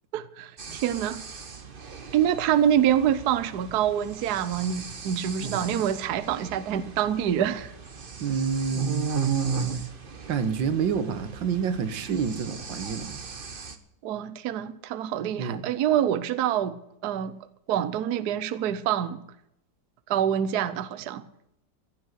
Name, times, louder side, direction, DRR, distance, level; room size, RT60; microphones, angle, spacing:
voice 1, 0.1-1.2 2.1-7.7 14.0-16.8 17.0-17.3 17.7-19.2 20.1-21.2, right 10 dB, 65° right, 1.3 m, -26 dB
sound 1, 0.6-13.8, right 6 dB, 35° right, 1.1 m, -36 dB
voice 2, 8.2-9.1 10.3-13.2 15.4-15.6, right 6 dB, 85° right, 1.9 m, -28 dB
16.0 x 9.2 x 8.1 m
omnidirectional pair, 2.0 m